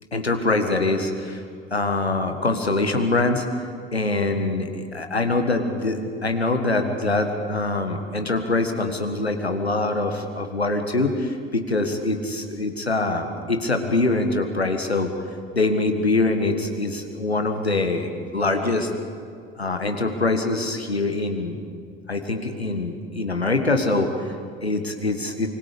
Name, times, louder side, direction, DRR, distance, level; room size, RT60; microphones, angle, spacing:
voice 1, 0.1-1.4 1.7-15.1 15.5-18.9 19.6-21.6 22.1-25.5, left 2 dB, 85° left, 6 dB, 1.7 m, -24 dB
26.0 x 24.5 x 5.2 m, 2.3 s
figure-of-eight pair, 65°, 31 cm